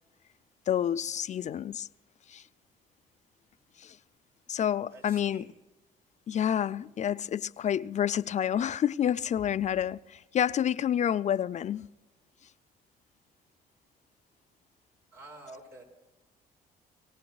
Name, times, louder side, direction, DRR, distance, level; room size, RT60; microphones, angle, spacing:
voice 1, 0.7-1.9 2.3-2.4 3.8-4.0 4.5-5.5 6.3-11.9, left 9 dB, 45° left, 0.4 m, -29 dB
voice 2, 4.9-5.5 15.1-15.8, right 2 dB, 70° right, 5.5 m, -48 dB
22.5 x 18.0 x 2.3 m
supercardioid pair, 80°, 18 cm